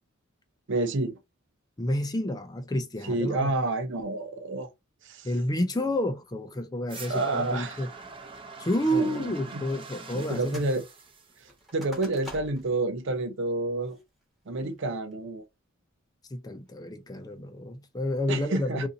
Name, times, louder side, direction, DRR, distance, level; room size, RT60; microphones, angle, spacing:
voice 1, 0.7-1.2 3.0-4.7 5.0-5.3 7.1-7.8 8.9-9.6 10.1-10.8 11.7-14.0 14.5-15.4 18.3-18.9, right 2 dB, 65° right, 0.6 m, -29 dB
voice 2, 1.8-3.5 5.2-7.9 8.6-10.7 16.3-18.9, equal, 20° left, 0.5 m, -30 dB
sound 1, 6.9-11.9, right 4 dB, 25° right, 0.6 m, -44 dB
sound 2, 10.2-10.8 11.1-12.8 13.2-13.3 13.8-14.2 14.7-15.1, equal, ahead, 1.1 m, -46 dB
2.6 x 2.6 x 3.8 m
head